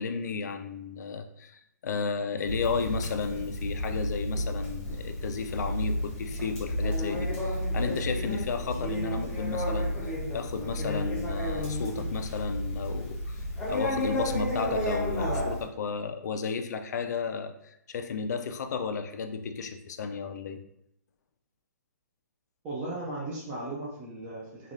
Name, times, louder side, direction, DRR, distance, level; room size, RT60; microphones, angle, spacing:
voice 1, 0.0-9.9 10.3-13.4 13.7-20.6, left 5 dB, 70° left, 7 dB, 0.4 m, -33 dB
Conversation, 2.4-15.6, equal, 10° left, 0.8 m, -31 dB
voice 2, 22.6-24.7, right 2 dB, 20° right, -6 dB, 0.4 m, -36 dB
3.2 x 2.3 x 2.5 m, 0.77 s
hypercardioid pair, 155°, 10 cm